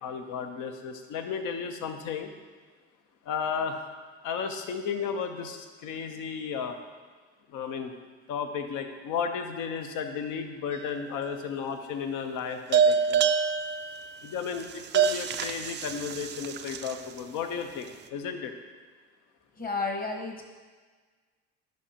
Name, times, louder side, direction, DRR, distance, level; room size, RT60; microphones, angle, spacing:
voice 1, 0.0-2.3 3.3-3.8 4.2-6.8 7.5-7.9 8.3-13.2 14.2-18.5, left 6 dB, 60° left, 6 dB, 0.9 m, -34 dB
sound 1, 10.7-11.3 12.7-17.2, right 6 dB, 30° right, 0.4 m, -27 dB
voice 2, 19.6-20.5, left 3 dB, 25° left, 2 dB, 1.3 m, -32 dB
10.5 x 5.2 x 2.9 m, 1.4 s
hypercardioid pair, 60°, 36 cm